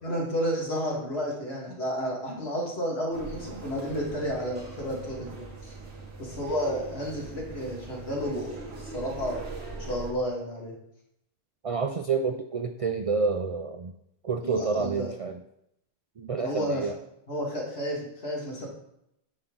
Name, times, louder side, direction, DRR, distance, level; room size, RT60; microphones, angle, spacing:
voice 1, 0.0-5.7 6.2-9.4 9.8-10.7 14.4-15.1 16.4-16.9 17.3-18.7, equal, 70° left, -3 dB, 2.3 m, -31 dB
sound 1, 3.1-10.1, right 3 dB, 75° right, 1.6 m, -41 dB
voice 2, 11.6-13.9 14.2-15.4 16.2-16.9, right 4 dB, 55° right, 6 dB, 0.4 m, -28 dB
9.5 x 5.9 x 3.8 m, 0.79 s
omnidirectional pair, 1.1 m